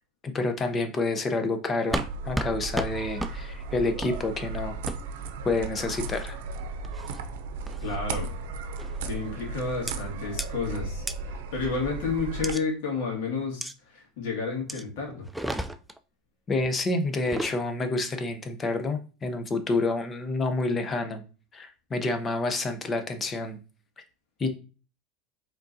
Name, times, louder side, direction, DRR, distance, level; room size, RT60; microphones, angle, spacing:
voice 1, 0.2-4.8 5.4-6.4 16.5-21.2 21.5-23.6 24.4-24.5, left 2 dB, 25° left, 7 dB, 0.8 m, -28 dB
sound 1, 1.9-2.1 2.4-2.5 2.8-2.9 3.2-3.3 4.0-4.2 4.9-5.0 5.9-6.3 6.8-7.2 7.7-8.0 8.8-9.1 9.9-10.0 10.4-10.5 11.1-11.2 12.4-12.6 13.6-13.7 14.7-14.8 15.3-16.0 17.1-17.6, equal, 5° right, 0.3 m, -32 dB
sound 2, 1.9-12.5, right 4 dB, 80° right, 0.6 m, -35 dB
voice 2, 7.8-8.3 9.0-15.3, left 4 dB, 75° left, 0 dB, 2.1 m, -31 dB
5.1 x 3.8 x 2.7 m, 0.36 s
supercardioid pair, 120°, 0 cm